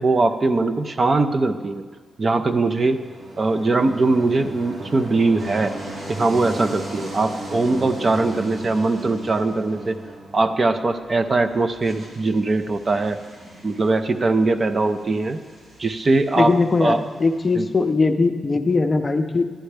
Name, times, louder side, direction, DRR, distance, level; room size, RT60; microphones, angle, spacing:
voice 1, 0.0-1.8 2.2-3.0 3.4-5.7 6.2-10.0 10.3-13.2 13.6-15.4 15.8-17.1 17.5-17.7, right 3 dB, 35° right, 9 dB, 0.4 m, -21 dB
sound 1, 2.5-11.2, right 1 dB, 60° right, 1.5 m, -36 dB
sound 2, 5.4-17.9, right 1 dB, 85° right, 2.8 m, -46 dB
voice 2, 16.4-19.5, left 3 dB, 30° left, 7 dB, 0.5 m, -20 dB
11.5 x 10.0 x 3.3 m, 1.5 s
wide cardioid pair, 115°, 0 cm